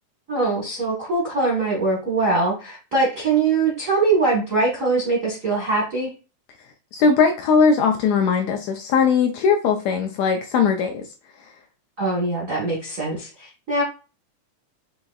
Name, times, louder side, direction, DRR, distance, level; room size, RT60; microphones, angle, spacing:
voice 1, 0.3-6.1 12.0-13.8, right 3 dB, 60° right, -4 dB, 0.8 m, -22 dB
voice 2, 6.9-11.0, left 5 dB, 80° left, 4 dB, 1.6 m, -19 dB
6.2 x 2.9 x 2.3 m, 0.32 s
omnidirectional pair, 3.5 m